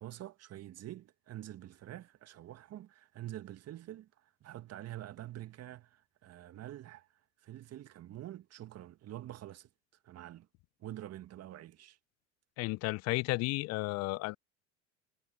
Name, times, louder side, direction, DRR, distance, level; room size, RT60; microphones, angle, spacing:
voice 1, 0.0-7.1 7.4-9.7 10.0-10.5 10.8-12.0, right 13 dB, 40° right, 2.0 m, -46 dB
voice 2, 12.6-14.4, left 23 dB, 45° left, 0.5 m, -33 dB
hypercardioid pair, 75°, 37 cm